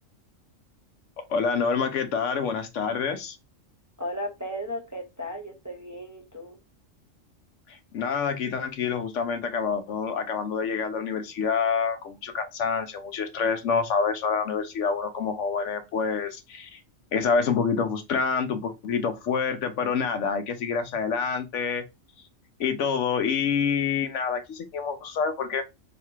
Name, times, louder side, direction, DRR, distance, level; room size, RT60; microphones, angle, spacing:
voice 1, 1.3-3.4 7.7-16.8 17.1-21.8 22.6-25.6, left 6 dB, 70° left, 1.0 m, -27 dB
voice 2, 4.0-6.6, equal, 15° right, 0.7 m, -35 dB
3.2 x 2.8 x 4.5 m
omnidirectional pair, 1.3 m